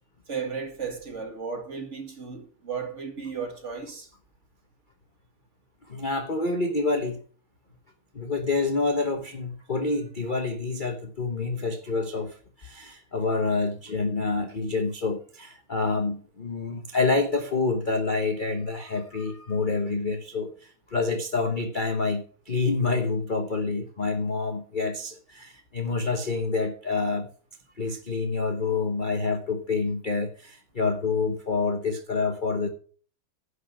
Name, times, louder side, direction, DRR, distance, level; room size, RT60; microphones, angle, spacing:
voice 1, 0.3-4.1, right 5 dB, 35° right, 2.1 m, -34 dB
voice 2, 5.9-7.2 8.1-27.3 27.8-32.7, left 3 dB, 40° left, 0.7 m, -27 dB
10.5 x 6.6 x 6.1 m
omnidirectional pair, 2.4 m